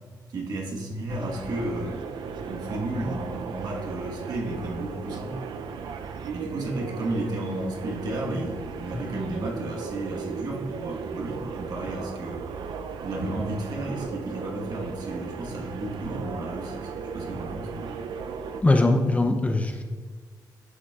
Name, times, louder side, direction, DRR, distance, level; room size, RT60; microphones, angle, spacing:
voice 1, 0.3-2.0 2.4-5.3 6.3-12.5 13.0-17.9, right 1 dB, 65° right, -1 dB, 1.3 m, -33 dB
sound 1, 1.1-18.6, right 6 dB, 85° right, 0.4 m, -36 dB
voice 2, 18.6-19.8, left 2 dB, 20° left, 5 dB, 0.5 m, -21 dB
11.0 x 6.0 x 2.4 m, 1.5 s
cardioid pair, 110°, 7 cm